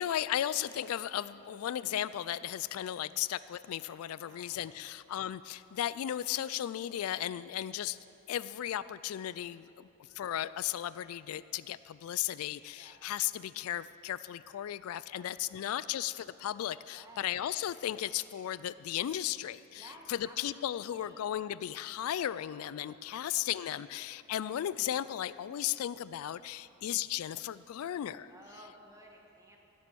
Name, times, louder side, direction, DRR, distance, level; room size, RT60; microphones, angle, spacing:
voice 1, 0.0-8.0 8.3-9.9 10.1-28.3, left 11 dB, 80° left, 17 dB, 0.3 m, -35 dB
voice 2, 4.2-4.9 9.6-10.0 12.7-13.0 15.1-16.0 16.9-17.3 19.7-21.4 22.9-23.9 28.3-29.6, right 1 dB, 15° right, 0 dB, 1.7 m, -57 dB
16.5 x 7.5 x 6.9 m, 2.8 s
head